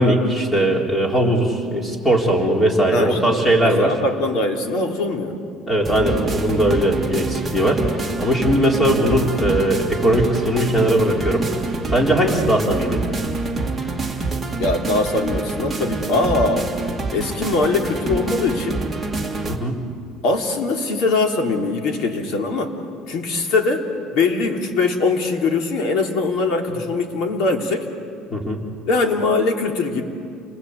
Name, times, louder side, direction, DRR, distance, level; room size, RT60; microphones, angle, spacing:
voice 1, 0.0-3.9 5.7-7.8 8.2-11.5 11.9-13.0 19.5-19.8 28.3-28.6, right 1 dB, 15° left, 0 dB, 3.7 m, -19 dB
voice 2, 2.9-5.4 12.2-12.4 14.6-18.8 20.2-22.7 23.1-23.8 24.1-27.9 28.9-30.0, left 3 dB, 60° left, 2 dB, 3.3 m, -22 dB
sound 1, 5.8-19.6, right 3 dB, 5° right, 2.2 m, -26 dB
29.5 x 21.5 x 8.2 m, 2.5 s
cardioid pair, 150°, 0 cm